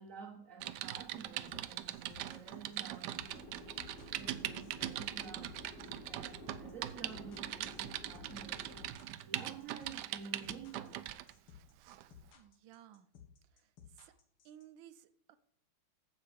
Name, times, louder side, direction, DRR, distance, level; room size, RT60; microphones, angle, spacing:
voice 1, 0.0-3.8 4.2-11.1, right 5 dB, 50° right, 1.1 m, -51 dB
Typing, 0.6-11.3 11.9-12.1, right 13 dB, 90° right, 0.9 m, -42 dB
sound 1, 1.5-14.6, left 8 dB, 75° left, 2.3 m, -57 dB
sound 2, 3.3-8.9, equal, 45° left, 3.7 m, -52 dB
voice 2, 12.3-13.1 13.5-14.1 14.4-15.4, right 11 dB, 70° right, 1.3 m, -58 dB
15.0 x 5.8 x 5.2 m
omnidirectional pair, 2.4 m